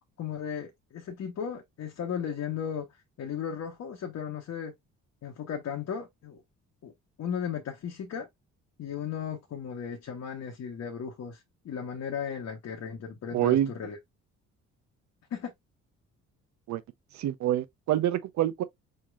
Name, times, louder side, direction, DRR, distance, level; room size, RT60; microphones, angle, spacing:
voice 1, 0.2-2.9 3.2-4.7 5.2-6.4 6.8-6.9 7.2-8.3 8.8-14.0 15.3-15.5, left 7 dB, 55° left, 1.0 m, -35 dB
voice 2, 13.3-13.7 16.7-16.8 17.1-18.6, right 12 dB, 65° right, 0.6 m, -26 dB
5.7 x 3.2 x 2.3 m
cardioid pair, 90°, 30 cm